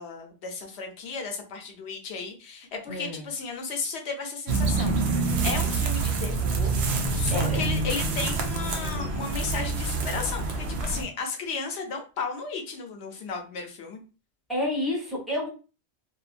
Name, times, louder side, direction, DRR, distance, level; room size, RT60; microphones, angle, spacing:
voice 1, 0.0-6.7 7.1-14.0, left 4 dB, 80° left, 4 dB, 1.0 m, -34 dB
voice 2, 2.9-3.3 7.3-7.7 14.5-15.5, left 1 dB, ahead, -4 dB, 1.1 m, -29 dB
sound 1, 4.5-11.0, right 3 dB, 80° right, 0.9 m, -26 dB
2.7 x 2.2 x 2.4 m, 0.33 s
omnidirectional pair, 1.1 m